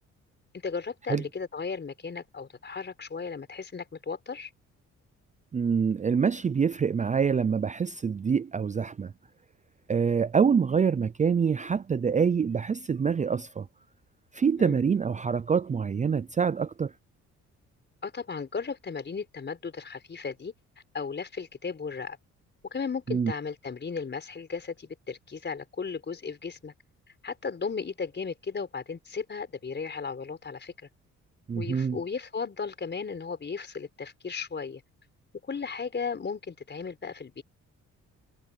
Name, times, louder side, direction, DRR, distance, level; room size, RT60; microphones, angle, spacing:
voice 1, 0.6-4.5 14.6-14.8 18.0-20.5 20.9-22.2 22.7-26.7 27.2-30.7 31.5-34.8 35.5-37.4, left 5 dB, 35° left, 4.9 m, -35 dB
voice 2, 5.5-9.1 9.9-13.7 14.3-16.9 23.1-23.3 31.5-32.0, right 6 dB, 25° right, 0.5 m, -25 dB
cardioid pair, 90°, 30 cm